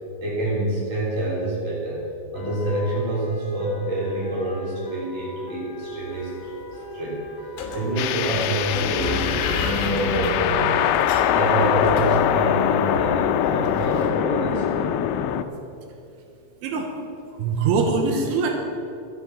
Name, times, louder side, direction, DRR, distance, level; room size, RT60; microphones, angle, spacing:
voice 1, 0.2-6.5 6.9-7.2 7.7-10.9 11.3-15.0, right 1 dB, 20° right, -5 dB, 3.1 m, -27 dB
sound 1, 2.3-14.8, equal, 45° left, 1.6 m, -39 dB
sound 2, 6.1-6.2 6.4-6.9 7.6-14.1, left 4 dB, 70° left, 3.4 m, -31 dB
sound 3, 8.0-15.4, left 10 dB, 90° left, 3.1 m, -23 dB
voice 2, 16.6-16.9 17.3-18.5, right 4 dB, 80° right, 2 dB, 3.7 m, -23 dB
12.5 x 9.0 x 7.4 m, 2.7 s
omnidirectional pair, 5.5 m